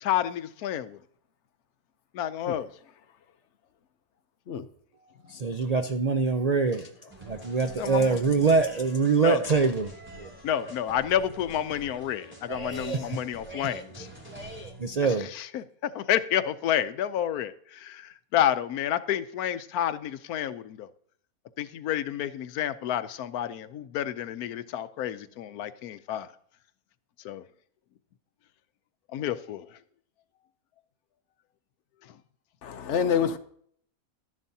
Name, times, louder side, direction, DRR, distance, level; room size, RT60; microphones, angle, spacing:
voice 1, 0.0-1.0 2.1-2.7 7.8-8.2 9.2-9.4 10.4-14.1 15.3-20.9 21.6-26.3 27.2-27.4 29.1-29.7, left 10 dB, 85° left, 1.1 m, -29 dB
voice 2, 5.3-6.9 7.2-10.3 12.5-13.2 13.5-13.8 14.3-15.3, right 4 dB, 60° right, 0.4 m, -25 dB
sound 1, 7.1-15.0, right 1 dB, 10° right, 2.9 m, -47 dB
voice 3, 32.6-33.4, left 7 dB, 60° left, 1.0 m, -26 dB
12.5 x 10.5 x 2.7 m
omnidirectional pair, 1.5 m